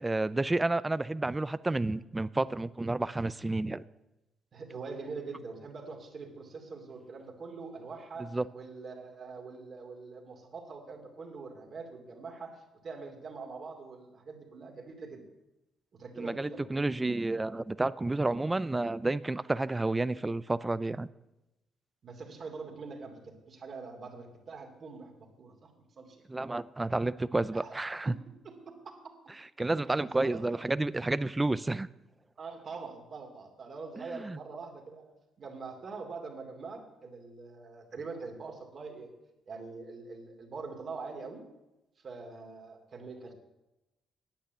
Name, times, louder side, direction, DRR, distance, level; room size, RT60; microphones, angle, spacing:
voice 1, 0.0-3.8 8.2-8.4 16.2-21.1 26.3-28.1 29.6-31.9 34.0-34.4, right 2 dB, 15° right, 17 dB, 0.5 m, -30 dB
voice 2, 4.5-15.2 15.9-16.9 22.0-26.2 27.5-27.7 28.0-28.2 28.4-29.1 30.0-30.6 32.4-39.1 39.5-41.4 42.0-43.3, right 4 dB, 50° right, 3 dB, 2.8 m, -44 dB
10.5 x 8.8 x 8.1 m, 0.96 s
cardioid pair, 90°, 0 cm